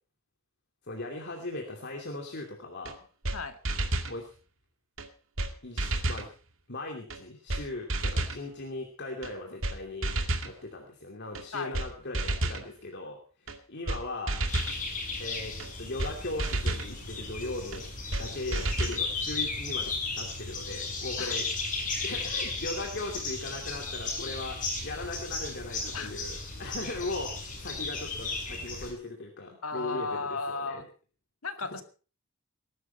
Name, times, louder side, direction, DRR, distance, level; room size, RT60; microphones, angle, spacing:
voice 1, 0.8-3.0 4.1-4.3 5.6-6.3 6.7-10.1 10.4-14.4 15.2-21.5 21.8-30.9, left 2 dB, 55° left, 2 dB, 2.7 m, -39 dB
sound 1, 2.9-3.0 3.2-3.4 3.7-4.1 5.0-5.1 5.4-5.5 5.8-6.3 7.1-7.2 7.5-7.6 7.9-8.4 9.2-9.3 9.6-9.8 10.0-10.5 11.4-11.5 11.7-11.9 12.1-12.6 13.5-13.6 13.9-14.0 14.3-14.8 15.6-15.7 16.0-16.1 16.4-16.9 17.7-17.8 18.1-18.3 18.5-19.0, right 2 dB, 65° right, 2.3 m, -30 dB
sound 2, 14.5-28.9, left 3 dB, 40° left, 6.6 m, -35 dB
voice 2, 29.6-30.9 31.4-31.8, left 4 dB, 80° left, 7 dB, 2.2 m, -34 dB
20.0 x 12.0 x 4.5 m, 0.38 s
head